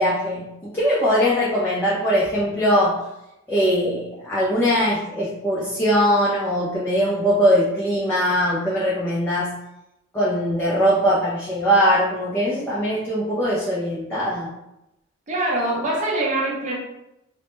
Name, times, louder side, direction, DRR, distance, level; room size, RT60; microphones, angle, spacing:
voice 1, 0.0-3.0 3.5-9.5 10.1-14.5, equal, 10° left, -8 dB, 0.4 m, -21 dB
voice 2, 15.3-16.8, right 1 dB, 35° right, -3 dB, 0.6 m, -23 dB
2.1 x 2.0 x 3.0 m, 0.88 s
head